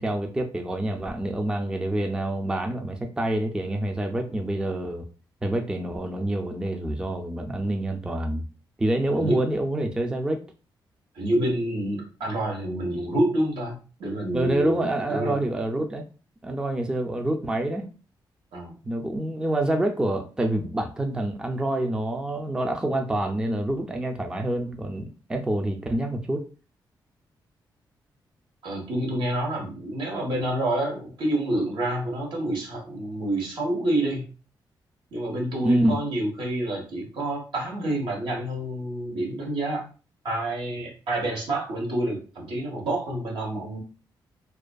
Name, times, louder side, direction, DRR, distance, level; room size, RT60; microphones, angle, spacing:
voice 1, 0.0-5.0 5.4-8.4 8.8-10.4 14.3-16.0 16.4-17.9 18.8-26.4 35.6-36.0, right 1 dB, 10° right, 4 dB, 0.3 m, -27 dB
voice 2, 11.1-15.4 18.5-18.7 28.6-34.2 35.1-39.8 40.2-43.8, right 1 dB, 80° right, -2 dB, 1.1 m, -28 dB
2.4 x 2.4 x 2.2 m, 0.36 s
cardioid pair, 100°, 8 cm